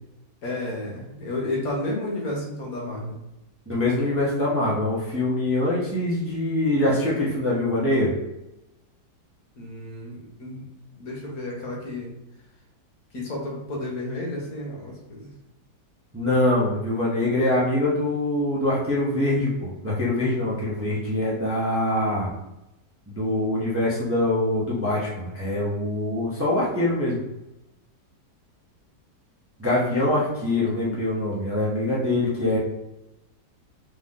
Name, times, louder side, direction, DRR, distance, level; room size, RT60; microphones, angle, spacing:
voice 1, 0.4-3.1 9.6-10.6 10.9-12.1 13.1-15.3, left 1 dB, 60° left, -2 dB, 1.5 m, -32 dB
voice 2, 3.7-8.1 16.1-22.3 23.1-27.2 29.6-32.6, left 1 dB, 10° right, -6 dB, 0.7 m, -24 dB
3.8 x 3.2 x 3.7 m, 0.92 s
omnidirectional pair, 1.8 m